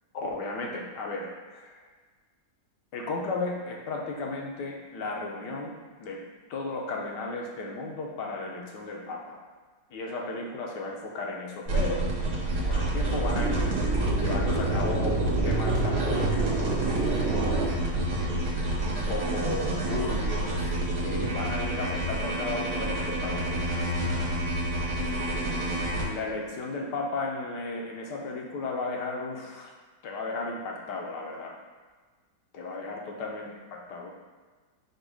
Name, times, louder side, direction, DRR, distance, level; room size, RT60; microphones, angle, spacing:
voice 1, 0.1-1.8 2.9-5.7 6.0-6.2 6.5-9.4 9.9-12.1 12.6-13.7 14.2-16.4 16.8-18.3 18.8-24.1 25.0-29.7 30.0-31.5 32.5-34.1, left 3 dB, 80° left, -1 dB, 1.3 m, -35 dB
sound 1, 11.7-26.0, right 1 dB, 55° right, 1.4 m, -29 dB
sound 2, 12.5-17.7, right 2 dB, 75° right, 1.2 m, -28 dB
5.1 x 2.2 x 4.7 m, 1.4 s
omnidirectional pair, 1.9 m